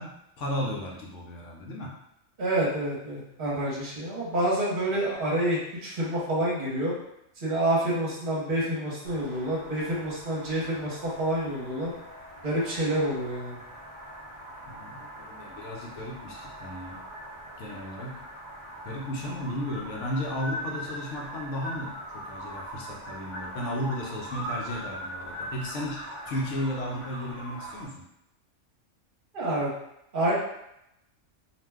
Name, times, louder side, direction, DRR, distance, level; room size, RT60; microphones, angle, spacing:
voice 1, 0.0-2.0 14.7-17.0 17.6-18.2 18.8-28.0, left 1 dB, 75° left, -2 dB, 0.9 m, -34 dB
voice 2, 2.4-6.9 7.4-11.9 12.4-13.6 29.3-29.7 30.1-30.3, right 1 dB, 45° right, -5 dB, 0.9 m, -28 dB
sound 1, 9.0-27.8, equal, 30° left, 0.6 m, -41 dB
2.5 x 2.1 x 3.4 m, 0.82 s
omnidirectional pair, 1.3 m